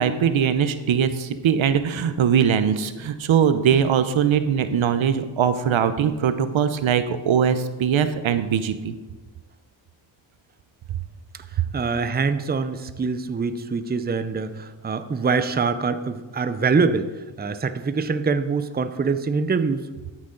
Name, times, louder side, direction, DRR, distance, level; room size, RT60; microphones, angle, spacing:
voice 1, 0.0-8.9, right 8 dB, 75° right, 11 dB, 0.7 m, -21 dB
voice 2, 11.7-17.1 17.4-19.9, right 4 dB, 20° right, 11 dB, 0.6 m, -24 dB
12.5 x 6.2 x 3.8 m, 1.2 s
cardioid pair, 60°, 47 cm